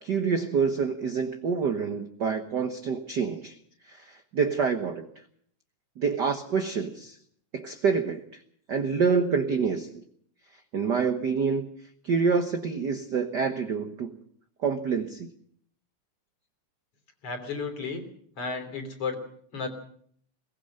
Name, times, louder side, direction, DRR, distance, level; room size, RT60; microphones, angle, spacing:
voice 1, 0.0-3.5 3.9-5.1 6.0-7.2 7.5-8.4 8.7-10.0 10.7-11.7 12.0-14.1 14.6-15.3, right 5 dB, 55° right, 7 dB, 1.2 m, -27 dB
voice 2, 17.2-18.1 18.4-19.2 19.5-19.7, left 4 dB, 50° left, 7 dB, 4.1 m, -33 dB
22.0 x 19.5 x 6.5 m, 0.62 s
omnidirectional pair, 3.4 m